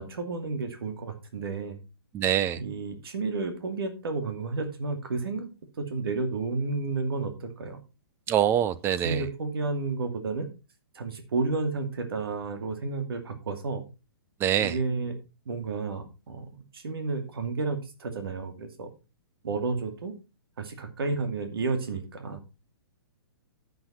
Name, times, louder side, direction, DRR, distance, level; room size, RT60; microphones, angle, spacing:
voice 1, 0.0-1.8 2.6-5.5 5.8-7.8 9.0-10.5 10.9-13.8 14.6-15.2 15.5-18.9 19.4-20.1 20.6-22.4, right 3 dB, 75° right, 2.5 m, -31 dB
voice 2, 2.1-2.6 8.3-9.2 14.4-14.8, right 10 dB, 20° right, 0.7 m, -24 dB
9.8 x 8.0 x 4.4 m
hypercardioid pair, 140°, 13 cm